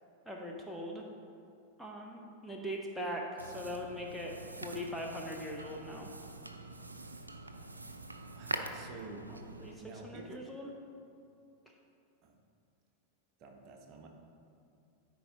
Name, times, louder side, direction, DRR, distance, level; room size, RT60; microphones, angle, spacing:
voice 1, 0.3-1.0 1.8-6.1 9.3-10.7, equal, ahead, -2 dB, 0.7 m, -41 dB
sound 1, 3.4-9.7, right 2 dB, 80° right, 0.4 m, -44 dB
voice 2, 8.3-9.3 9.8-10.3 12.2-12.3 13.4-14.1, right 3 dB, 40° right, 3 dB, 0.9 m, -49 dB
13.0 x 4.7 x 2.8 m, 2.6 s
figure-of-eight pair, 90°, 0 cm